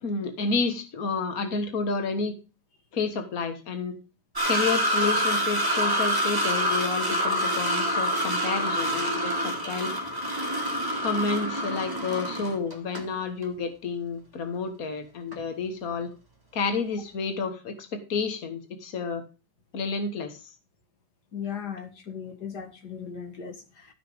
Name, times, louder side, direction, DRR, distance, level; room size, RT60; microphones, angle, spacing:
voice 1, 0.0-2.3 2.9-4.0 4.4-9.9 11.0-16.1 16.5-19.2 19.7-20.5, left 4 dB, 65° left, 7 dB, 0.8 m, -30 dB
sound 1, 4.3-13.1 13.4-13.5 15.3-15.4, equal, 10° right, 1.3 m, -27 dB
voice 2, 21.3-23.9, left 7 dB, 40° left, 6 dB, 1.6 m, -37 dB
14.0 x 6.0 x 5.1 m, 0.31 s
omnidirectional pair, 3.9 m